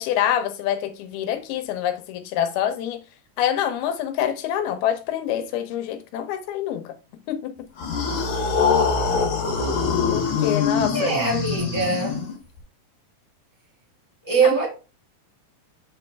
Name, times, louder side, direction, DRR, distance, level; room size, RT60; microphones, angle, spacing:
voice 1, 0.0-3.0 3.4-6.9 7.3-7.6 10.1-11.1 14.4-14.6, left 10 dB, 90° left, 2.8 m, -26 dB
sound 1, 7.8-12.6, left 5 dB, 60° left, 2.5 m, -23 dB
voice 2, 10.9-12.2 14.2-14.7, right 4 dB, 10° left, 1.0 m, -22 dB
7.5 x 4.1 x 3.4 m
omnidirectional pair, 4.3 m